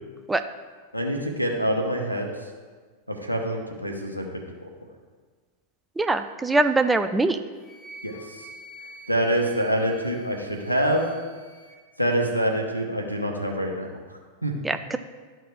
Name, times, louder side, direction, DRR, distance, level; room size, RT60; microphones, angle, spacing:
voice 1, 0.9-2.3 3.1-4.7 8.0-8.5 9.1-11.1 12.0-13.9 14.4-14.5, equal, 90° right, 0 dB, 1.0 m, -26 dB
voice 2, 6.0-7.4 14.6-15.0, right 2 dB, 10° right, 9 dB, 0.3 m, -22 dB
Wind instrument woodwind instrument, 7.6-11.8, right 1 dB, 10° left, 2.3 m, -47 dB
12.5 x 4.5 x 3.1 m, 1.5 s
figure-of-eight pair, 90°, 0 cm